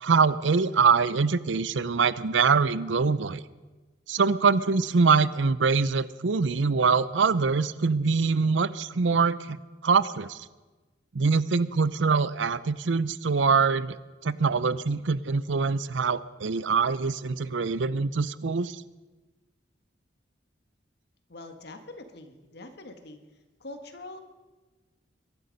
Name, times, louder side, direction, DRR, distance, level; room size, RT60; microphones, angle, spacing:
voice 1, 0.0-3.4 4.1-9.6 9.8-10.4 11.1-14.0 14.2-18.8, right 5 dB, 80° right, 17 dB, 0.6 m, -24 dB
voice 2, 21.3-23.2 23.6-24.2, left 2 dB, 65° left, 7 dB, 1.6 m, -43 dB
22.0 x 12.0 x 5.3 m, 1.2 s
head